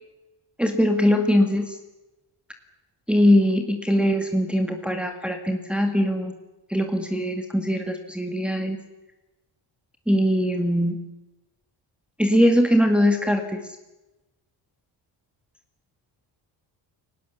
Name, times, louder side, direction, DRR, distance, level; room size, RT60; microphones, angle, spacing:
voice 1, 0.6-1.7 3.1-6.3 6.7-8.8 10.1-11.0 12.2-13.6, equal, ahead, 3 dB, 1.8 m, -21 dB
29.5 x 18.5 x 7.0 m, 1.0 s
cardioid pair, 145°, 45 cm